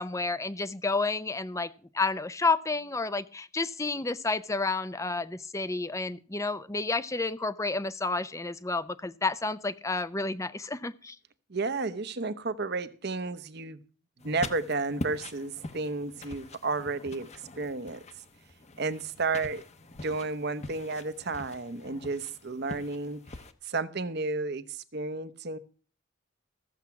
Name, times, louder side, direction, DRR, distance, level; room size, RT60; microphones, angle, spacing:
voice 1, 0.0-1.7 1.9-11.2, left 3 dB, 15° left, 15 dB, 0.5 m, -30 dB
voice 2, 11.5-13.8 14.2-17.3 17.6-18.0 18.8-19.6 20.0-23.2 23.6-25.6, right 3 dB, 55° right, 14 dB, 0.9 m, -32 dB
sound 1, 14.2-23.5, left 2 dB, 35° left, 0.9 m, -43 dB
14.5 x 7.3 x 5.8 m, 0.40 s
head